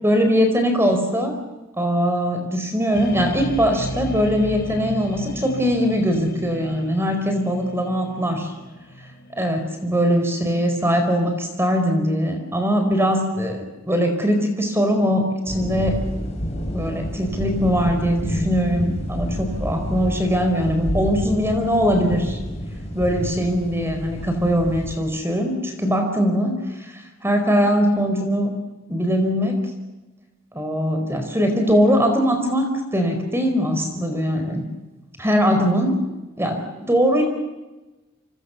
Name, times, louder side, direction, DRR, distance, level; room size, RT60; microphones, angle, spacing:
voice 1, 0.0-1.3 1.8-8.5 9.4-16.0 16.7-22.4 22.9-28.5 28.9-29.6 30.5-34.6 35.2-35.9 36.4-37.2, equal, 10° right, 5 dB, 4.5 m, -21 dB
sound 1, 2.9-11.3, equal, 50° left, 4.1 m, -35 dB
sound 2, 15.5-25.0, equal, 30° left, 6.6 m, -29 dB
29.5 x 26.0 x 7.1 m, 1.1 s
head